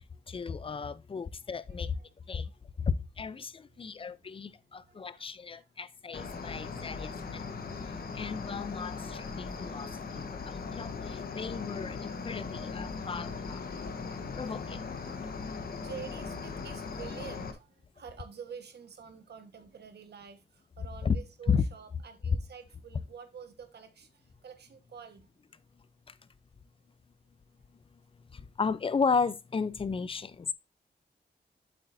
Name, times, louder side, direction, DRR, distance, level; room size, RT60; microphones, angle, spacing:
voice 1, 0.3-2.0 2.3-2.5 2.9-7.4 8.1-9.9 10.3-13.7 14.4-14.8 21.0-21.2 21.5-21.6 28.3-30.5, left 5 dB, 30° left, 0.5 m, -34 dB
voice 2, 3.7-4.1 4.7-5.9 11.3-12.1 13.6-25.3 27.6-27.7, right 7 dB, 70° right, 1.3 m, -50 dB
Cricket, 6.1-17.5, left 4 dB, 55° left, 1.2 m, -39 dB
8.9 x 7.6 x 2.6 m
wide cardioid pair, 175°, 18 cm